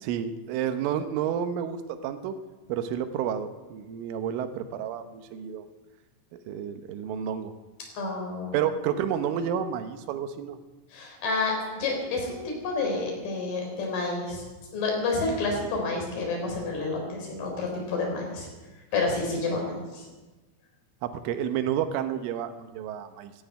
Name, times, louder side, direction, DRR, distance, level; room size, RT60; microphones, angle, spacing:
voice 1, 0.0-2.4 2.7-5.7 6.3-7.5 8.5-10.6 21.0-23.3, right 9 dB, 80° right, 9 dB, 3.3 m, -30 dB
voice 2, 7.9-8.6 10.9-14.4 14.7-18.5 18.9-20.1, left 3 dB, 45° left, 0 dB, 5.2 m, -29 dB
12.5 x 12.5 x 9.3 m, 1.2 s
omnidirectional pair, 5.9 m